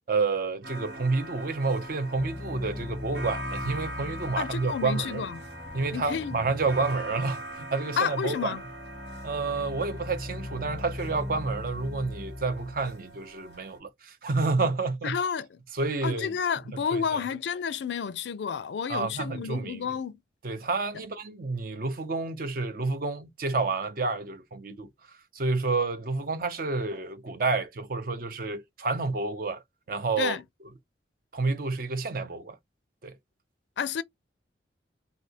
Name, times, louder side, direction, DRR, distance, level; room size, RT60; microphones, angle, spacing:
voice 1, 0.1-5.2 5.7-8.5 9.2-15.2 15.7-16.3 16.7-17.2 18.9-19.9 20.4-24.9 25.3-29.6 29.9-30.4 31.3-32.6 33.0-33.1, right 3 dB, 55° right, 0.6 m, -29 dB
sound 1, 0.6-13.8, right 1 dB, 80° right, 1.1 m, -42 dB
sound 2, 2.2-12.9, left 1 dB, 5° left, 0.6 m, -40 dB
voice 2, 4.4-5.4 5.9-6.4 8.0-8.6 15.0-15.6 16.0-20.2 30.2-30.4 33.8-34.0, left 7 dB, 75° left, 0.4 m, -30 dB
3.3 x 2.6 x 2.8 m
head